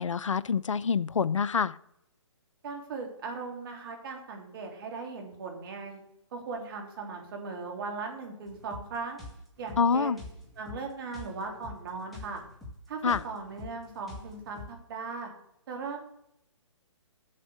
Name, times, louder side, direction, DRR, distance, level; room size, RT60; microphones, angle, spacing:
voice 1, 0.0-1.8 9.8-10.2 13.0-13.2, left 6 dB, 75° left, 19 dB, 0.5 m, -26 dB
voice 2, 2.6-6.0 6.3-9.2 9.6-10.2 10.5-12.4 12.9-15.3 15.7-16.0, right 4 dB, 45° right, 2 dB, 3.2 m, -38 dB
sound 1, 8.5-14.8, left 2 dB, ahead, 2.1 m, -46 dB
7.5 x 7.4 x 8.0 m, 0.76 s
figure-of-eight pair, 135°, 16 cm